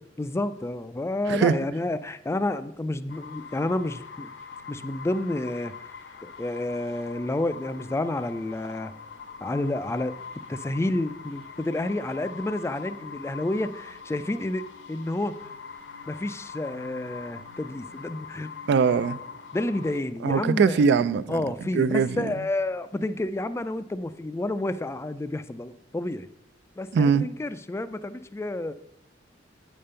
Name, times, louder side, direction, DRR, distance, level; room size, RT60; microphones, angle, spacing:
voice 1, 0.2-4.3 4.7-5.7 6.2-8.9 9.4-10.2 10.5-15.5 16.1-18.5 19.5-20.8 21.3-26.3 26.8-28.7, left 2 dB, 15° left, 0.3 m, -30 dB
sound 1, 3.1-20.0, left 5 dB, 75° left, 0.8 m, -43 dB
voice 2, 18.7-19.2 20.2-21.4 21.7-22.3 26.9-27.3, right 5 dB, 65° right, 0.3 m, -21 dB
8.6 x 5.1 x 5.5 m
head